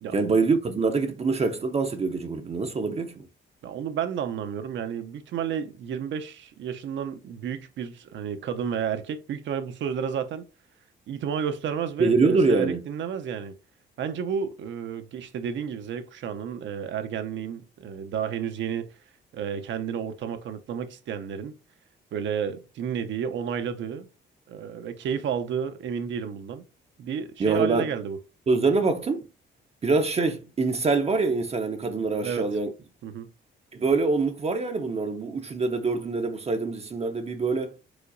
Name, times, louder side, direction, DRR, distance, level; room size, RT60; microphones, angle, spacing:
voice 1, 0.1-3.3 12.0-12.8 27.4-27.9 28.5-29.3 29.8-32.7 33.7-37.7, right 4 dB, 30° right, 0.6 m, -24 dB
voice 2, 3.6-10.4 11.1-13.5 14.0-18.9 19.3-21.6 22.1-24.1 24.5-26.6 27.0-28.2 32.2-32.5 33.0-33.3, right 7 dB, 70° right, 0.7 m, -31 dB
4.8 x 3.9 x 2.6 m
cardioid pair, 90°, 20 cm